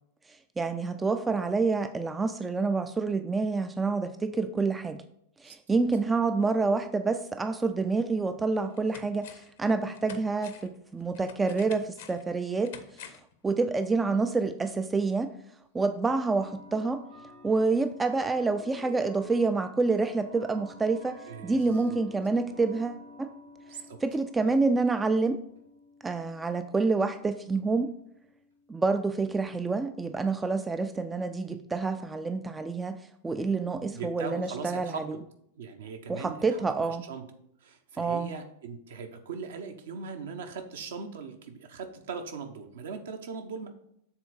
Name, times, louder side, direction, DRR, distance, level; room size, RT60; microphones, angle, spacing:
voice 1, 0.6-5.0 5.4-12.7 13.4-15.3 15.7-17.0 17.4-23.3 24.0-25.4 26.0-27.9 28.7-35.2 36.1-37.0 38.0-38.3, right 3 dB, 15° right, 10 dB, 0.3 m, -28 dB
sound 1, 8.0-8.1 8.5-9.6 9.9-13.4 13.7-13.8, left 8 dB, 55° left, 0.6 m, -49 dB
sound 2, 14.0-14.1 15.2-15.3 16.2-29.4, right 1 dB, 85° right, 2.1 m, -51 dB
voice 2, 21.3-22.0 23.7-24.0 33.9-35.2 35.6-36.6 37.1-37.2 37.6-43.7, right 5 dB, 60° right, 6 dB, 0.9 m, -39 dB
7.3 x 3.8 x 4.9 m, 0.72 s
figure-of-eight pair, 90°, 0 cm